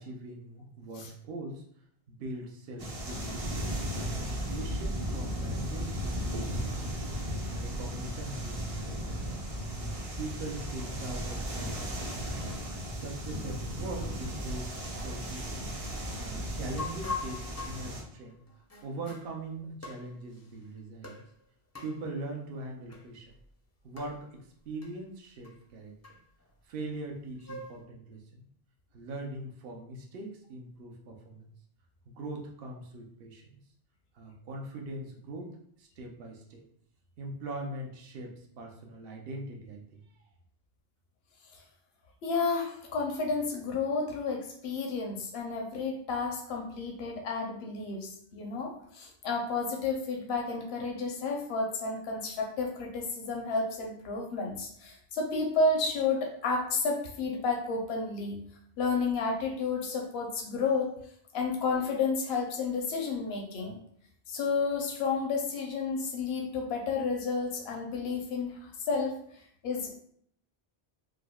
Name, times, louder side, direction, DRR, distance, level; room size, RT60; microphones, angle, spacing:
voice 1, 0.0-1.6 2.1-3.4 4.0-6.8 7.5-9.2 9.7-12.5 12.9-15.7 16.2-18.4 18.8-21.2 21.8-23.3 23.8-26.0 26.6-28.4 28.9-31.5 32.1-33.6 34.1-36.6 37.2-40.0, right 2 dB, 70° right, 1 dB, 0.8 m, -41 dB
sound 1, 2.8-18.0, equal, 45° right, 0.5 m, -35 dB
sound 2, 16.8-19.3 19.8-20.5 21.0-21.3 21.7-22.0 22.9-23.1 23.3-23.4 24.0-24.2 24.8-24.9 25.4-25.5 26.0-26.5 27.1-27.8, left 4 dB, 25° left, 0.3 m, -41 dB
voice 2, 42.2-58.4 58.8-61.0 61.3-63.8 64.3-69.2 69.6-69.9, left 4 dB, 80° left, 1 dB, 0.9 m, -31 dB
4.8 x 2.0 x 2.3 m, 0.66 s
omnidirectional pair, 1.0 m